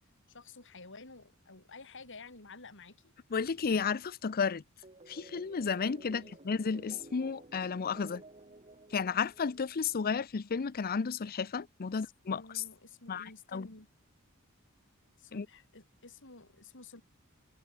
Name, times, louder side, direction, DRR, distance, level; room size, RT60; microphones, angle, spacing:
voice 1, 0.3-3.1 6.1-6.4 11.9-13.9 15.2-17.0, left 3 dB, 60° left, 5.9 m, -52 dB
voice 2, 3.3-4.6 5.1-8.2 8.9-12.4 13.1-13.2 13.5-13.7 15.3-15.4, left 5 dB, 45° left, 0.5 m, -32 dB
sound 1, 4.8-10.0, right 2 dB, 30° right, 3.9 m, -54 dB
head